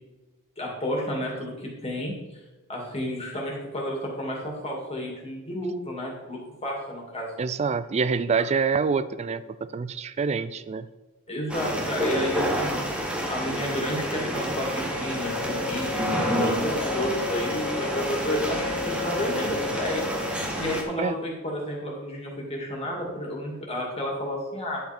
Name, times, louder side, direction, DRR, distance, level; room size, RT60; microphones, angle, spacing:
voice 1, 0.6-2.1 2.7-7.3 11.3-20.0 20.6-24.8, equal, 30° left, -2 dB, 2.3 m, -31 dB
voice 2, 7.4-10.9 21.0-21.2, right 5 dB, 30° right, 15 dB, 0.3 m, -26 dB
sound 1, 11.5-20.8, left 1 dB, 5° right, 1.0 m, -28 dB
10.5 x 5.1 x 4.4 m, 1.1 s
head